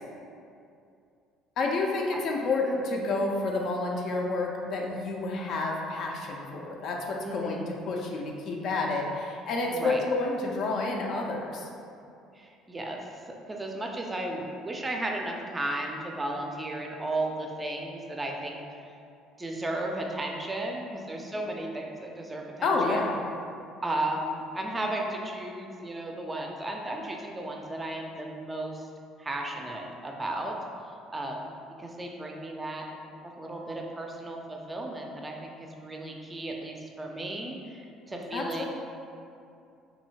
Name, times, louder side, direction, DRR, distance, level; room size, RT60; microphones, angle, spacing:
voice 1, 1.6-11.7 22.6-23.2 38.3-38.7, left 3 dB, 50° left, 0 dB, 0.3 m, -29 dB
voice 2, 7.2-7.6 9.7-10.0 12.4-13.0 13.5-18.6 19.4-23.1 23.8-28.9 29.2-30.5 31.1-31.5 31.8-32.8 33.2-38.7, right 1 dB, 20° right, 1 dB, 0.4 m, -34 dB
2.6 x 2.6 x 2.9 m, 2.5 s
figure-of-eight pair, 55°, 0 cm